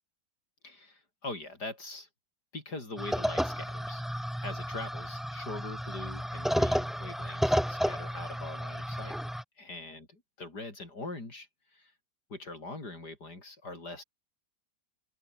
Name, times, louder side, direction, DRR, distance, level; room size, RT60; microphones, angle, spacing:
voice 1, 0.6-2.1 2.5-4.0 4.4-9.2 9.6-11.9 12.3-14.0, left 2 dB, 70° left, 5.9 m, -42 dB
sound 1, 3.0-9.4, equal, ahead, 1.3 m, -32 dB
omnidirectional pair, 1.8 m